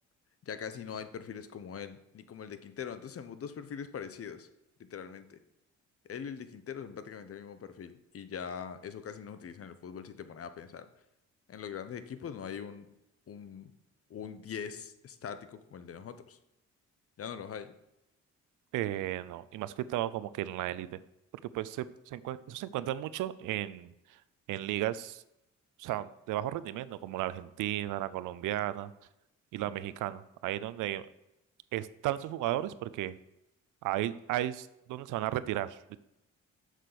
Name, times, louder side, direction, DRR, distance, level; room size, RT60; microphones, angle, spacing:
voice 1, 0.4-4.5 4.9-5.4 6.1-10.9 11.5-12.9 13.3-13.7 14.1-16.4 17.2-17.7 29.6-29.8, left 7 dB, 50° left, 11 dB, 1.0 m, -42 dB
voice 2, 18.7-21.0 21.5-23.9 24.5-25.2 25.8-28.9 29.5-31.1 31.7-33.2 33.8-36.0, right 13 dB, 90° right, 16 dB, 0.6 m, -34 dB
7.6 x 6.5 x 6.9 m, 0.87 s
cardioid pair, 90°, 30 cm